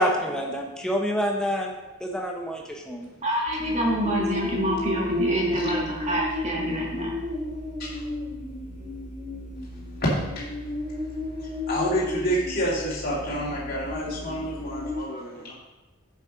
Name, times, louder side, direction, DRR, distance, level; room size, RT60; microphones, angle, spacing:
voice 1, 0.0-1.7 2.0-3.1, equal, 5° left, 1 dB, 0.9 m, -27 dB
voice 2, 3.2-7.1, right 1 dB, 30° right, -3 dB, 1.8 m, -27 dB
sound 1, 3.5-14.9, left 2 dB, 50° right, 2.7 m, -32 dB
voice 3, 11.4-15.5, equal, 40° left, -7 dB, 2.2 m, -29 dB
7.1 x 6.7 x 5.1 m, 1.1 s
head